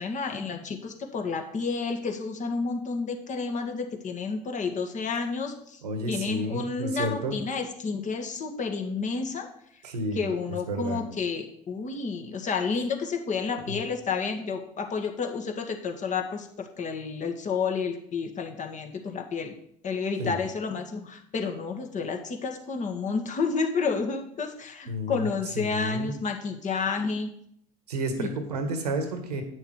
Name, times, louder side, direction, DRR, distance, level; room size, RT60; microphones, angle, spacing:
voice 1, 0.0-5.8 6.1-9.5 10.1-19.6 19.8-27.3 28.2-28.3, left 5 dB, 40° left, 4 dB, 1.8 m, -30 dB
voice 2, 5.8-7.4 9.8-11.0 20.2-20.4 24.9-25.3 25.5-26.2 27.9-29.4, right 1 dB, 85° right, 7 dB, 1.5 m, -31 dB
9.3 x 6.5 x 4.8 m, 0.69 s
hypercardioid pair, 70°, 20 cm